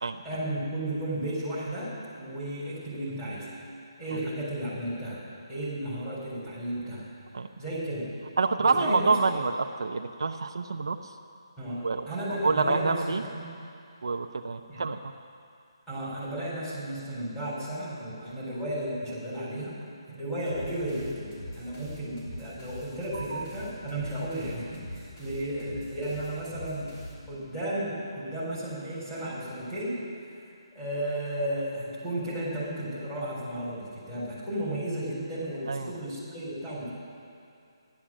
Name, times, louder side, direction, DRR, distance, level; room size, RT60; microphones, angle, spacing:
voice 1, 0.2-3.5 4.0-7.0 7.6-8.1 8.6-9.4 11.6-13.5 14.7-14.8 15.9-19.8 20.1-27.0 27.3-30.0 30.7-36.9, right 1 dB, 5° left, -10 dB, 4.0 m, -34 dB
voice 2, 8.4-11.0 11.8-12.0 12.4-13.2 14.0-15.0 23.1-23.4 35.7-35.9, right 4 dB, 65° right, 6 dB, 0.7 m, -27 dB
sound 1, 20.5-27.6, left 1 dB, 30° left, 3.2 m, -43 dB
14.5 x 11.5 x 7.5 m, 2.5 s
hypercardioid pair, 175°, 3 cm